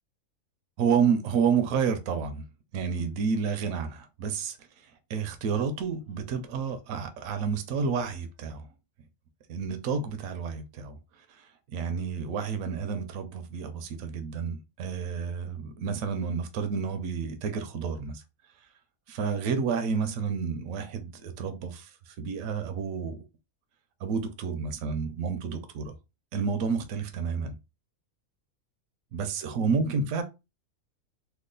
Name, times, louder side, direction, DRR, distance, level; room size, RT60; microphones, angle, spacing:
voice 1, 0.8-2.4 2.7-4.6 5.1-8.7 9.5-11.0 11.3-18.2 19.1-23.2 24.0-25.9 26.3-27.6 29.1-30.2, right 6 dB, 80° right, 1.0 m, -30 dB
3.0 x 2.3 x 3.7 m
omnidirectional pair, 1.4 m